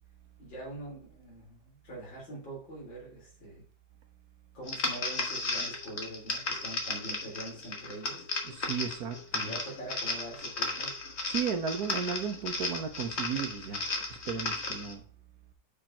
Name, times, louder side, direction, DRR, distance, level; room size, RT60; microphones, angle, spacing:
voice 1, 0.4-3.6 4.5-8.3 9.3-10.9, right 1 dB, 70° left, -3 dB, 3.9 m, -44 dB
sound 1, 4.7-14.9, left 3 dB, 40° left, 1.4 m, -35 dB
voice 2, 8.4-9.5 11.3-13.8 14.3-15.0, right 7 dB, 60° right, 5 dB, 1.2 m, -34 dB
6.4 x 5.0 x 4.3 m, 0.43 s
omnidirectional pair, 2.1 m